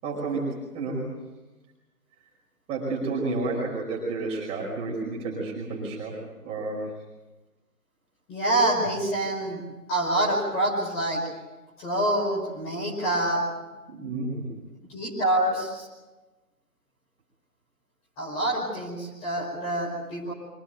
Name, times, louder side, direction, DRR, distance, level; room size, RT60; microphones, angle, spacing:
voice 1, 0.0-1.1 2.7-6.2 6.4-6.9 13.9-14.5, right 3 dB, 15° right, -2 dB, 5.3 m, -30 dB
voice 2, 8.3-9.6 9.9-11.2 11.8-13.4 14.9-15.9 18.2-20.3, right 1 dB, 15° left, -3 dB, 5.2 m, -26 dB
25.0 x 17.5 x 9.2 m, 1.1 s
figure-of-eight pair, 150°, 47 cm